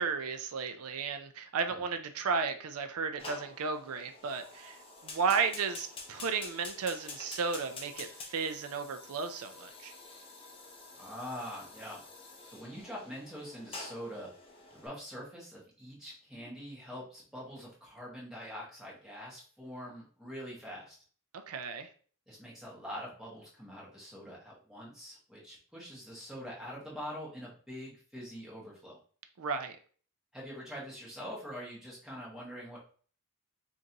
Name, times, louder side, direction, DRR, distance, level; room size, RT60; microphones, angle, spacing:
voice 1, 0.0-9.9 21.3-21.9 29.4-29.8, right 5 dB, 85° right, 8 dB, 0.5 m, -34 dB
Fire, 3.2-14.9, left 3 dB, 25° left, 0.7 m, -48 dB
voice 2, 11.0-12.0 12.4-14.3 14.7-21.0 22.3-29.0 30.3-32.8, equal, ahead, -5 dB, 1.3 m, -44 dB
5.2 x 2.6 x 2.8 m, 0.43 s
head